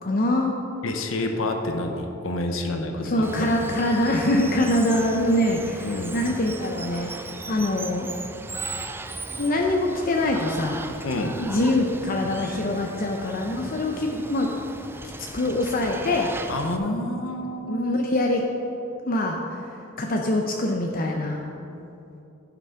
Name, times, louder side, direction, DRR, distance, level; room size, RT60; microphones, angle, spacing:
voice 1, 0.0-0.5 3.0-8.1 8.7-8.8 9.2-10.9 11.4-14.5 15.2-16.3 17.7-18.4 19.0-21.5, left 1 dB, 45° left, 1 dB, 0.7 m, -24 dB
voice 2, 0.8-3.5 5.8-6.2 11.0-11.4 16.5-17.9, left 1 dB, 85° left, 4 dB, 0.8 m, -28 dB
Water, 3.2-16.8, right 3 dB, 10° right, 0.4 m, -37 dB
11.5 x 6.0 x 5.8 m, 2.8 s
head